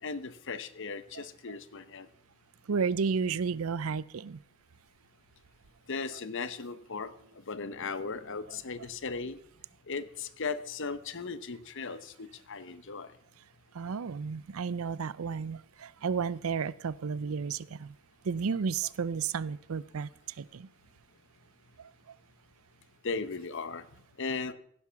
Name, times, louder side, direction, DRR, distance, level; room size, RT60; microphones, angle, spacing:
voice 1, 0.0-2.1 5.9-9.4 9.9-13.1 23.0-23.9 24.2-24.5, left 4 dB, 60° left, 13 dB, 0.9 m, -37 dB
voice 2, 1.1-1.6 2.7-4.4 13.7-17.9 18.2-20.1 20.4-20.7 21.8-22.1, right 5 dB, 70° right, 20 dB, 0.5 m, -33 dB
16.5 x 11.0 x 5.8 m, 0.71 s
head